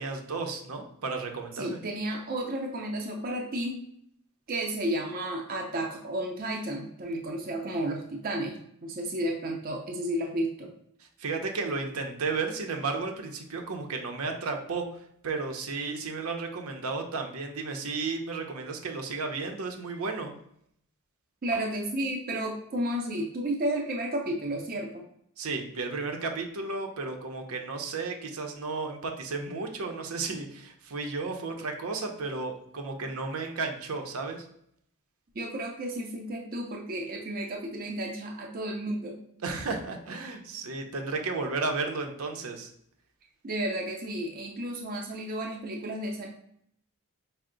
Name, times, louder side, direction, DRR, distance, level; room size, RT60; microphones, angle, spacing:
voice 1, 0.0-1.8 11.0-20.3 25.4-34.5 39.4-42.7, right 4 dB, 80° right, 4 dB, 0.6 m, -33 dB
voice 2, 1.5-3.8 4.5-10.7 21.4-25.0 35.3-39.2 43.4-46.3, right 1 dB, 40° right, 1 dB, 0.5 m, -32 dB
4.4 x 2.1 x 3.7 m, 0.70 s
head